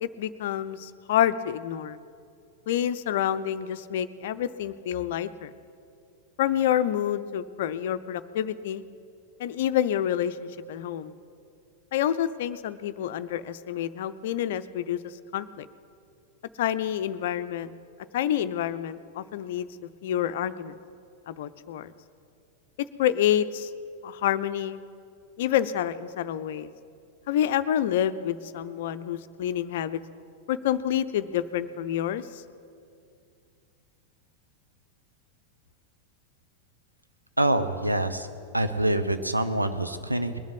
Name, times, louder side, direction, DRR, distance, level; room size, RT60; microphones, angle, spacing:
voice 1, 0.0-2.0 2.7-5.5 6.4-8.8 9.4-11.1 11.9-15.0 15.3-15.7 16.6-17.7 18.1-19.7 20.0-20.8 21.3-21.9 23.0-23.7 24.0-24.8 25.4-26.7 27.3-30.0 30.5-32.4, left 10 dB, 55° left, 12 dB, 0.6 m, -28 dB
voice 2, 37.4-38.3 38.5-40.4, right 1 dB, 85° right, 8 dB, 0.9 m, -25 dB
20.5 x 7.3 x 9.6 m, 2.4 s
figure-of-eight pair, 90°, 0 cm